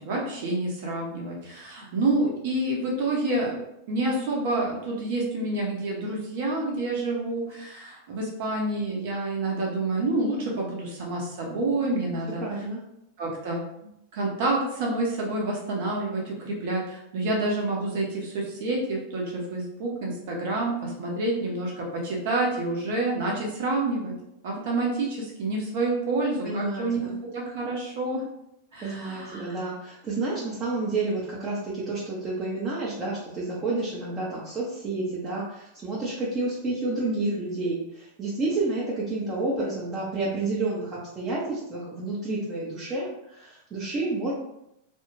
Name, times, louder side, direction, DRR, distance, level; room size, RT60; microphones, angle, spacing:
voice 1, 0.0-3.6 3.9-12.4 13.2-13.6 14.1-24.1 24.4-27.0 27.3-28.2 28.7-29.6, right 2 dB, 50° right, -2 dB, 0.9 m, -28 dB
voice 2, 12.4-12.8 26.4-27.1 28.8-44.3, right 2 dB, 25° right, -7 dB, 0.8 m, -30 dB
2.5 x 2.4 x 3.1 m, 0.81 s
figure-of-eight pair, 90°, 0 cm